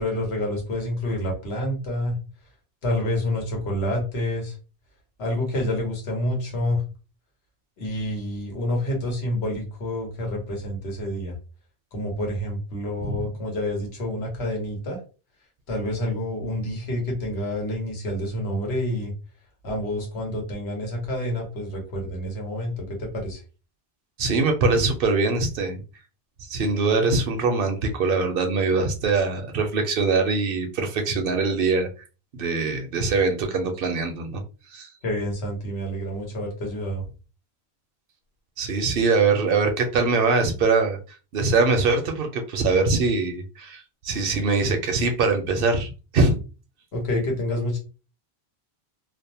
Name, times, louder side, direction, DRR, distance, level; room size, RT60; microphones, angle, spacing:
voice 1, 0.0-2.1 2.8-4.5 5.2-6.8 7.8-11.3 11.9-15.0 15.7-19.1 19.6-23.4 35.0-37.0 46.9-47.8, left 1 dB, 85° left, 0 dB, 1.2 m, -28 dB
voice 2, 24.2-25.8 26.5-31.9 32.3-34.4 34.7-34.9 38.6-41.0 41.3-46.4, right 4 dB, 65° right, 5 dB, 0.7 m, -23 dB
2.6 x 2.0 x 2.7 m, 0.33 s
omnidirectional pair, 1.1 m